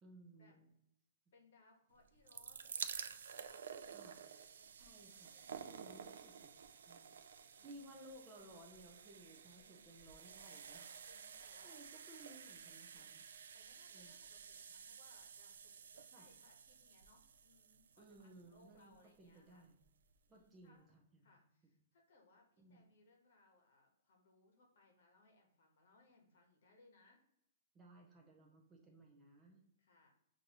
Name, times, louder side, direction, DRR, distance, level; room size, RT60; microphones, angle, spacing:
voice 1, 0.0-0.7 3.9-4.2 4.7-5.3 5.7-6.5 6.9-7.1 7.6-10.9 11.3-13.2 13.9-14.1 16.1-16.3 18.0-19.8 20.3-21.2 22.6-22.8 27.7-29.6, right 1 dB, 15° right, 0 dB, 0.5 m, -60 dB
voice 2, 1.3-3.8 4.5-4.7 5.1-5.5 7.5-7.8 9.6-9.9 11.1-11.8 12.2-12.4 12.9-19.7 20.3-20.9 21.2-27.2 29.8-30.1, left 2 dB, 55° left, 2 dB, 1.1 m, -70 dB
sound 1, 2.0-19.1 19.8-19.9 20.1-20.2, right 7 dB, 85° right, 0.4 m, -52 dB
6.2 x 2.6 x 2.9 m, 0.78 s
hypercardioid pair, 180°, 0 cm